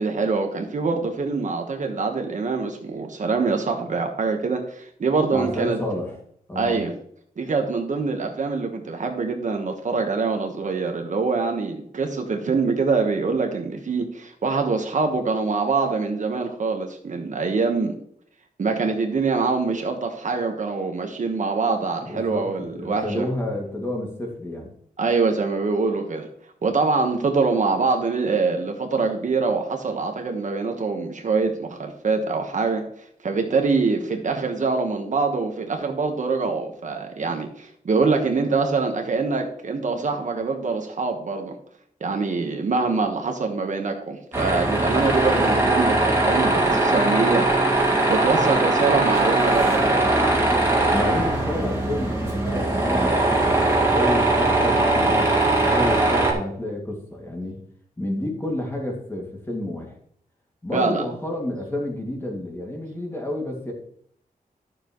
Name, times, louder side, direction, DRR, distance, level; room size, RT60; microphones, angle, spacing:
voice 1, 0.0-5.8 6.5-6.9 7.4-17.9 18.6-23.3 25.0-26.3 26.6-32.8 33.2-41.5 42.0-47.5 47.8-50.1 60.7-61.0, right 4 dB, 55° right, 4 dB, 1.3 m, -24 dB
voice 2, 5.3-6.2 6.5-6.8 22.0-24.7 50.9-57.6 58.0-60.0 60.6-63.7, left 1 dB, 15° left, -1 dB, 2.2 m, -30 dB
Tools, 44.3-56.3, right 2 dB, 15° right, 2.3 m, -20 dB
12.0 x 7.1 x 3.1 m, 0.64 s
wide cardioid pair, 170°, 15 cm